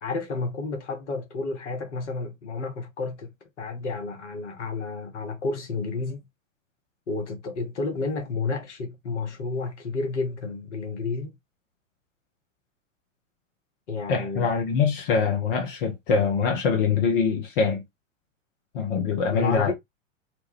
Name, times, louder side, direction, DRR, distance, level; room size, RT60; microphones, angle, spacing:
voice 1, 0.0-6.3 7.1-11.4 13.9-14.5 19.3-19.7, left 3 dB, 60° left, 1.1 m, -31 dB
voice 2, 14.1-17.8 18.7-19.7, left 5 dB, 45° left, 0.7 m, -24 dB
2.9 x 2.2 x 3.2 m
figure-of-eight pair, 95°, 39 cm